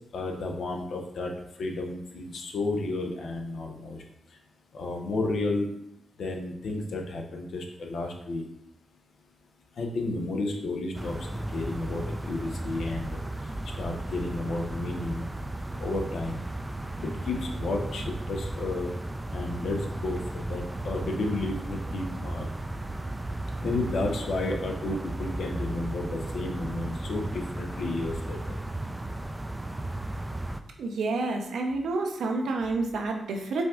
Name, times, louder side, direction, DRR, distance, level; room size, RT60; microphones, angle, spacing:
voice 1, 0.1-1.3 1.6-4.0 4.7-5.7 6.2-8.4 9.8-11.2 11.5-13.2 13.8-15.3 15.8-16.4 17.0-18.9 19.3-22.5 23.6-28.4, left 2 dB, 75° left, 2 dB, 0.7 m, -32 dB
sound 1, 10.9-30.6, right 1 dB, 20° right, 0.3 m, -35 dB
voice 2, 30.8-33.6, right 3 dB, 80° right, 3 dB, 0.6 m, -29 dB
5.0 x 2.5 x 3.6 m, 0.79 s
supercardioid pair, 50°, 0 cm